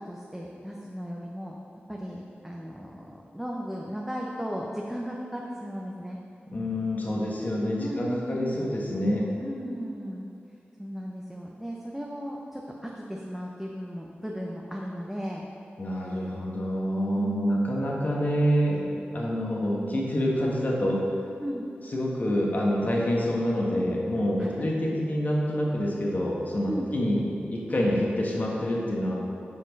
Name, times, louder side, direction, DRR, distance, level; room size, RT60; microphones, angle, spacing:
voice 1, 0.0-1.5 1.9-6.2 7.8-8.6 9.4-10.3 10.8-15.5 15.9-16.3 17.2-17.6 21.4-21.7 24.4-24.7 26.7-26.9, equal, 5° right, -2 dB, 0.7 m, -35 dB
voice 2, 6.5-9.2 15.8-18.8 19.1-21.0 21.9-27.2 27.5-29.1, equal, 45° left, -3 dB, 1.4 m, -27 dB
7.7 x 6.1 x 5.3 m, 2.5 s
wide cardioid pair, 100°, 4 cm